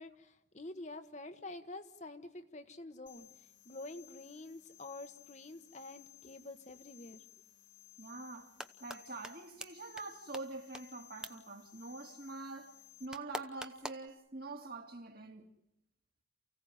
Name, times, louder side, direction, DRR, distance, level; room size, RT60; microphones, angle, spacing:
voice 1, 0.0-7.2, left 2 dB, 35° left, 1.3 m, -48 dB
A fly in my head, 3.1-13.1, left 14 dB, 90° left, 3.1 m, -59 dB
voice 2, 8.0-8.5 8.8-12.7 13.0-15.5, right 3 dB, 50° right, 2.6 m, -45 dB
sound 1, 8.3-9.0 9.2-9.3 9.6-9.7 10.0-10.1 10.3-10.4 10.7-10.8 11.2-11.3 13.1-14.1, right 1 dB, 5° right, 0.9 m, -42 dB
29.0 x 16.5 x 9.4 m
head